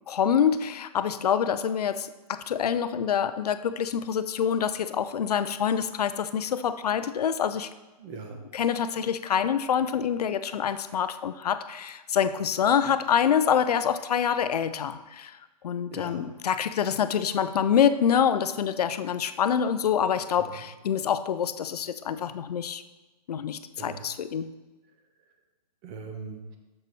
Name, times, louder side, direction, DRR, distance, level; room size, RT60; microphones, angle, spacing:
voice 1, 0.1-7.7 8.5-15.4 15.6-22.8 23.3-24.5, left 8 dB, 70° left, 12 dB, 0.6 m, -26 dB
voice 2, 8.0-8.4 15.9-16.3 20.4-20.6 23.8-24.1 25.8-26.6, right 5 dB, 25° right, 3 dB, 1.1 m, -40 dB
6.7 x 6.6 x 4.6 m, 1.1 s
hypercardioid pair, 145°, 21 cm